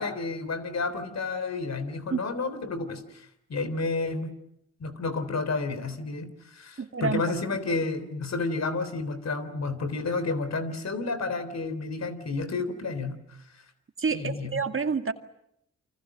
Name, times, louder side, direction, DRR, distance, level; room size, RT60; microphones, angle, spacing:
voice 1, 0.0-4.4 4.8-13.2 14.1-14.5, left 3 dB, 60° left, 11 dB, 3.7 m, -31 dB
voice 2, 6.8-7.2 14.0-15.1, right 5 dB, 45° right, 7 dB, 2.2 m, -28 dB
29.0 x 25.0 x 7.6 m, 0.76 s
hypercardioid pair, 40°, 30 cm